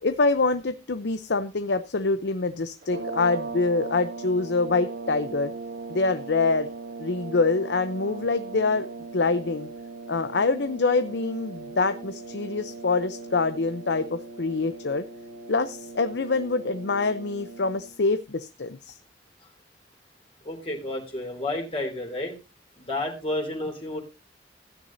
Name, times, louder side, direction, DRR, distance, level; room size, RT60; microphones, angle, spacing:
voice 1, 0.0-5.5 5.9-6.7 7.0-8.9 9.1-9.7 10.1-15.0 15.5-19.0, left 3 dB, 75° left, 10 dB, 0.7 m, -25 dB
sound 1, 2.8-17.9, right 3 dB, 75° right, 3.8 m, -39 dB
voice 2, 20.4-22.3 22.8-24.0, left 1 dB, 30° left, 0 dB, 3.1 m, -31 dB
15.5 x 9.6 x 2.7 m, 0.28 s
head